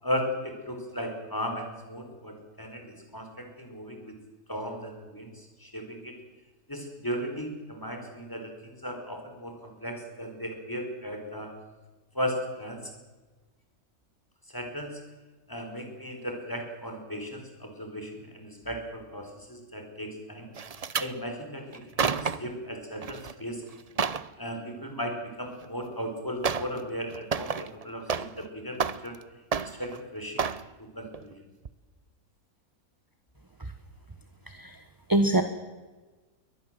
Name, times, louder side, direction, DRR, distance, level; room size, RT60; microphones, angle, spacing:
voice 1, 0.0-4.1 4.5-6.2 6.7-11.5 12.1-12.9 14.5-15.0 15.5-20.5 21.0-23.6 24.4-28.8 29.0-29.2 29.6-30.5 30.9-31.4, equal, 15° left, 3 dB, 4.8 m, -36 dB
sound 1, 20.5-21.1 21.7-22.5 23.0-23.3 23.7-24.3 25.6-25.7 26.4-26.8 27.1-28.5 28.7-29.2 29.5-30.0 30.4-30.7 31.1-31.3 31.6-31.7, right 6 dB, 40° right, 0.6 m, -30 dB
voice 2, 34.5-34.8 35.1-35.4, right 1 dB, 15° right, 9 dB, 1.1 m, -23 dB
23.0 x 19.0 x 7.7 m, 1.3 s
omnidirectional pair, 1.6 m